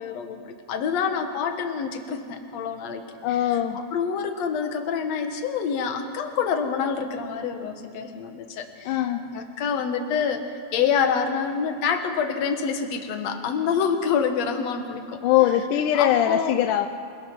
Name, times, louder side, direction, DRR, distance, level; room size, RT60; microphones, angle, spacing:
voice 1, 0.0-3.0 3.9-10.4 10.7-15.2 15.9-16.5, left 6 dB, 55° left, 6 dB, 2.1 m, -27 dB
voice 2, 3.2-3.8 8.9-9.2 15.2-16.9, left 11 dB, 80° left, 8 dB, 1.8 m, -21 dB
27.0 x 18.5 x 6.0 m, 2.5 s
omnidirectional pair, 4.4 m